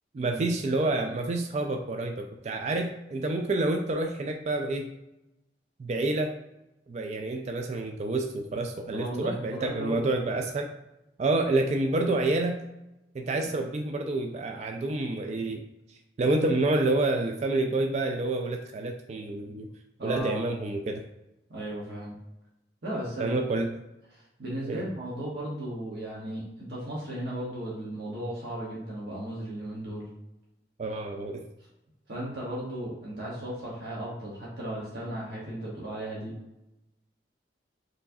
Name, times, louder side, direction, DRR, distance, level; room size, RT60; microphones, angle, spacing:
voice 1, 0.1-4.9 5.8-6.3 6.9-10.7 11.2-12.6 13.1-15.6 16.2-19.7 20.0-21.0 23.2-23.7 24.6-24.8 30.8-31.4, right 2 dB, 40° right, 3 dB, 0.3 m, -28 dB
voice 2, 8.9-10.0 20.0-20.4 21.5-22.2 22.8-23.4 24.1-30.0 32.1-36.3, right 1 dB, 65° right, -6 dB, 1.1 m, -35 dB
4.5 x 3.1 x 2.6 m, 0.91 s
head